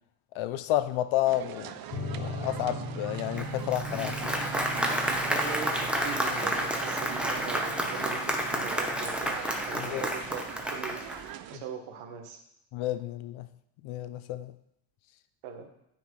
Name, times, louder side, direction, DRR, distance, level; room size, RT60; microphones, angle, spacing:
voice 1, 0.3-1.7 2.1-4.4 4.9-5.0 9.7-10.1 11.5-11.6 12.7-13.5 13.8-14.5, left 13 dB, 70° left, 0.7 m, -31 dB
sound 1, 1.2-11.6, right 11 dB, 50° right, 0.5 m, -42 dB
sound 2, 1.9-10.9, left 1 dB, 50° left, 1.9 m, -41 dB
Applause, 3.4-11.3, equal, ahead, 0.9 m, -30 dB
voice 2, 5.3-9.4 9.7-10.4 10.7-11.0 11.5-12.4 15.4-15.7, right 6 dB, 80° right, 1.6 m, -40 dB
9.5 x 4.4 x 4.7 m
cardioid pair, 115°, 50 cm